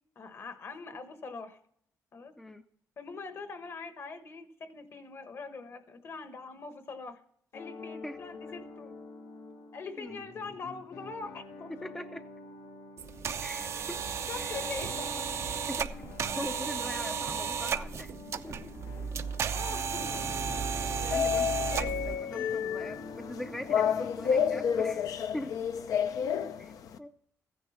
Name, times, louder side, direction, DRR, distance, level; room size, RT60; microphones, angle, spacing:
voice 1, 0.1-1.6 2.1-2.3 3.0-7.2 7.5-8.9 9.7-11.7 14.3-15.5 19.5-20.5 22.3-22.6, left 4 dB, 45° left, 9 dB, 1.3 m, -43 dB
sound 1, 7.5-25.0, left 3 dB, 80° left, 1.6 m, -47 dB
voice 2, 11.7-12.3 13.4-14.0 14.4-14.6 15.7-15.9 16.4-18.7 21.0-25.1 25.3-25.6 26.6-26.7 27.0-27.1, left 1 dB, 5° left, 6 dB, 0.5 m, -41 dB
sound 2, 13.0-22.2, right 7 dB, 50° right, 0.6 m, -34 dB
sound 3, 20.0-27.0, left 7 dB, 65° left, 0.7 m, -31 dB
15.0 x 10.0 x 4.3 m, 0.70 s
cardioid pair, 130°, 6 cm